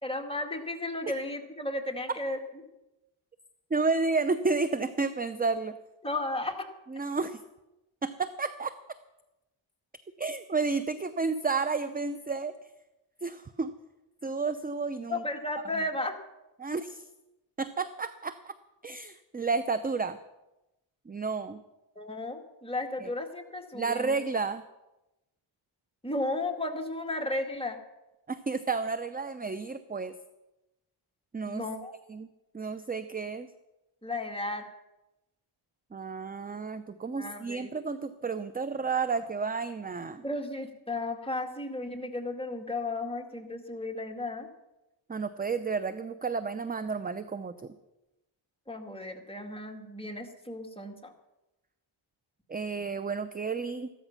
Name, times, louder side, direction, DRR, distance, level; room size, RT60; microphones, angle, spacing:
voice 1, 0.0-2.4 6.0-6.7 15.1-16.1 22.0-24.2 26.0-27.8 31.5-31.9 34.0-34.6 37.2-37.7 40.2-44.5 48.7-51.1, left 2 dB, 10° left, 4 dB, 2.1 m, -34 dB
voice 2, 3.7-5.8 6.9-7.4 8.0-8.7 10.2-12.5 13.2-13.7 14.2-15.2 16.6-17.0 17.6-18.5 18.8-20.2 21.1-21.6 23.0-23.1 23.7-24.6 28.3-30.1 31.3-31.7 32.1-32.3 32.5-33.5 35.9-40.2 45.1-47.7 52.5-53.9, right 4 dB, 20° right, 12 dB, 0.6 m, -31 dB
14.5 x 13.0 x 5.8 m, 0.97 s
cardioid pair, 80°, 49 cm